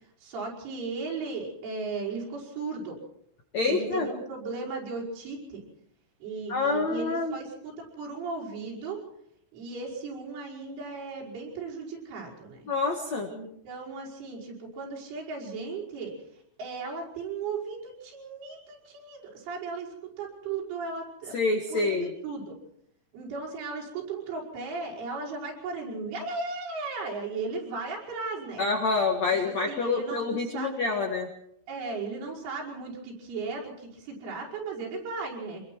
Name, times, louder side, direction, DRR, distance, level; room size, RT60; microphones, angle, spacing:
voice 1, 0.2-3.0 3.6-5.6 6.2-9.0 9.5-12.7 13.3-16.2 16.6-21.4 21.7-22.6 23.1-28.7 29.4-31.0 31.7-35.6, right 4 dB, 70° right, -4 dB, 7.8 m, -36 dB
voice 2, 3.5-4.1 6.5-7.4 12.7-13.3 21.3-22.1 28.6-31.3, left 3 dB, 60° left, 2 dB, 1.8 m, -27 dB
26.0 x 21.5 x 4.6 m, 0.73 s
omnidirectional pair, 5.8 m